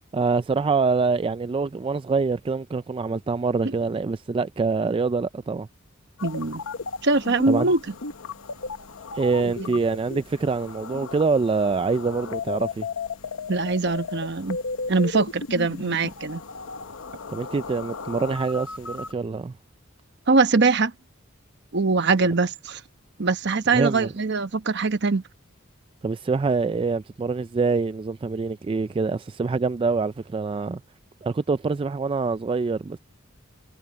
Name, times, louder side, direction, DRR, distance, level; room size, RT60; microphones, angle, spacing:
voice 1, 0.1-5.7 7.5-7.7 9.1-12.9 17.3-19.5 23.7-24.1 26.0-30.8 31.2-33.0, right 4 dB, 25° right, 0.3 m, -25 dB
sound 1, 6.2-19.1, left 4 dB, 85° left, 1.0 m, -35 dB
voice 2, 6.2-6.6 7.0-7.8 13.5-14.6 14.9-16.4 20.3-20.9 21.7-22.8 23.2-25.2, right 3 dB, 60° right, 1.0 m, -22 dB
head